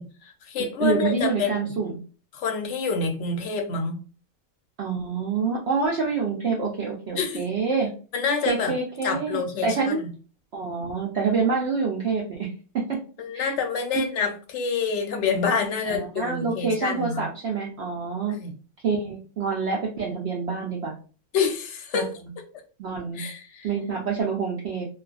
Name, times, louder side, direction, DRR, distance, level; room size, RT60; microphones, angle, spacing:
voice 1, 0.0-1.7 2.3-4.0 7.2-7.4 8.1-8.7 9.0-10.1 13.2-17.3 18.3-18.5 21.3-22.1 23.1-23.7, left 5 dB, 65° left, 4 dB, 0.8 m, -27 dB
voice 2, 0.8-2.0 4.8-7.9 8.5-10.0 10.5-12.5 12.7-13.0 13.3-13.5 13.9-14.0 16.2-18.4 18.8-20.9 21.9-22.3 22.8-23.2 23.6-24.9, right 5 dB, 60° right, -2 dB, 0.7 m, -26 dB
2.4 x 2.3 x 2.3 m, 0.37 s
omnidirectional pair, 1.4 m